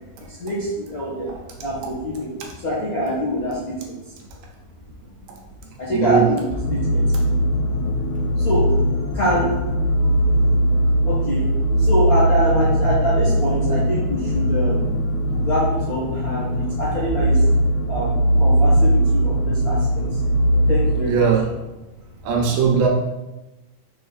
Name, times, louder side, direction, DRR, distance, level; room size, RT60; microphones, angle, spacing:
voice 1, 0.3-1.3 1.6-2.3 2.6-4.0 5.8-7.0 8.4-8.6 9.1-9.5 10.0-10.2 11.1-11.4 11.8-14.8 15.4-17.4 17.9-19.8 20.7-21.2, equal, 55° left, -9 dB, 0.9 m, -24 dB
voice 2, 5.9-6.3 21.1-21.4 22.2-22.9, right 6 dB, 80° right, 0 dB, 2.6 m, -18 dB
sound 1, 6.5-21.0, equal, 80° left, 2.3 m, -20 dB
5.9 x 4.1 x 4.0 m, 1.0 s
omnidirectional pair, 4.0 m